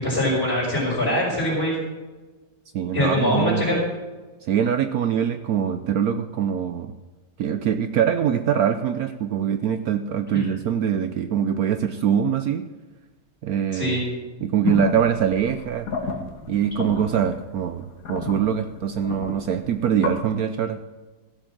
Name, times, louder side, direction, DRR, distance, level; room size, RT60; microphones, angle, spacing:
voice 1, 0.0-1.7 2.9-3.8 10.3-10.5 13.7-14.0, left 1 dB, 35° left, -4 dB, 5.5 m, -23 dB
voice 2, 2.7-3.8 4.4-6.9 7.4-12.7 13.4-14.0 14.4-15.9 16.5-20.9, right 8 dB, 65° right, 9 dB, 1.0 m, -23 dB
sound 1, 14.6-20.2, left 4 dB, 55° left, 2.0 m, -33 dB
14.5 x 7.7 x 7.3 m, 1.2 s
omnidirectional pair, 1.8 m